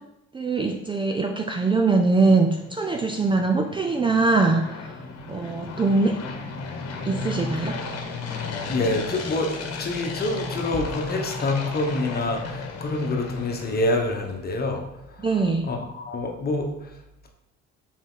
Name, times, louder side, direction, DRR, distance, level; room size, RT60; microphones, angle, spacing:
voice 1, 0.3-4.6 5.3-6.2 7.1-7.8 15.2-15.7, right 3 dB, 15° right, 3 dB, 0.4 m, -22 dB
sound 1, 2.3-14.4, left 4 dB, 60° left, 1.2 m, -35 dB
voice 2, 8.7-14.8 15.6-16.7, left 2 dB, 35° left, 2 dB, 1.1 m, -26 dB
5.7 x 4.5 x 3.7 m, 0.88 s
cardioid pair, 110°, 29 cm